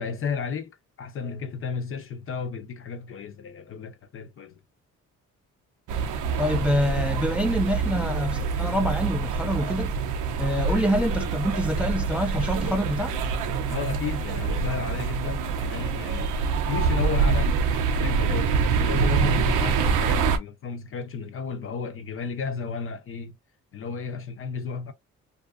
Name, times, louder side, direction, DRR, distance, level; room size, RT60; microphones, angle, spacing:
voice 1, 0.0-4.6 13.7-23.4 23.7-24.9, left 5 dB, 45° left, 0.6 m, -33 dB
sound 1, 5.9-20.4, right 5 dB, 85° right, 0.6 m, -25 dB
voice 2, 6.4-9.9 10.4-13.1, equal, 5° right, 0.4 m, -26 dB
2.7 x 2.4 x 2.3 m
cardioid pair, 90°, 30 cm